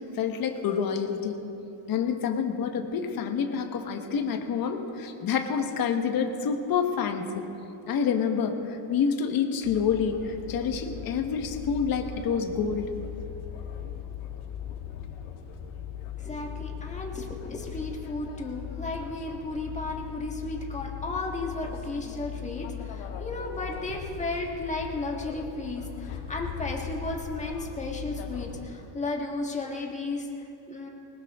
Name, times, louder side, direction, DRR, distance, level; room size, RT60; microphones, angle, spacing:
voice 1, 0.0-1.4 1.9-7.5 7.9-12.9, left 6 dB, 45° left, 5 dB, 1.4 m, -28 dB
sound 1, 9.6-28.6, left 8 dB, 85° left, 1.7 m, -39 dB
voice 2, 16.2-30.3 30.7-30.9, left 2 dB, 15° left, 0 dB, 1.7 m, -34 dB
20.5 x 19.0 x 3.7 m, 2.9 s
cardioid pair, 160°, 49 cm